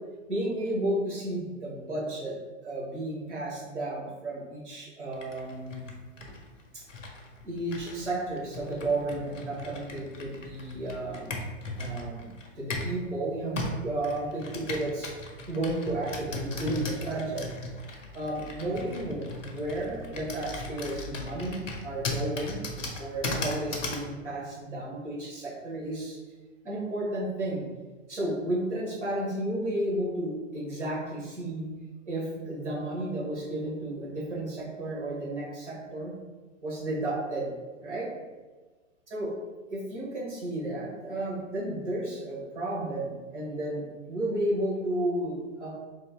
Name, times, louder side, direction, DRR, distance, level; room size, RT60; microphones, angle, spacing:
voice 1, 0.3-2.4 2.6-5.8 6.7-6.8 7.4-11.4 11.8-12.3 12.6-15.1 15.5-17.5 17.9-22.6 23.0-26.2 26.6-27.7 28.1-31.8 32.1-36.1 36.6-37.5 37.8-38.1 39.1-39.3 39.7-45.7, right 1 dB, 65° right, -5 dB, 1.5 m, -32 dB
Computer keyboard, 5.1-13.0 13.6-24.1, left 2 dB, 75° left, 0.7 m, -37 dB
3.7 x 2.7 x 2.3 m, 1.3 s
figure-of-eight pair, 110°, 39 cm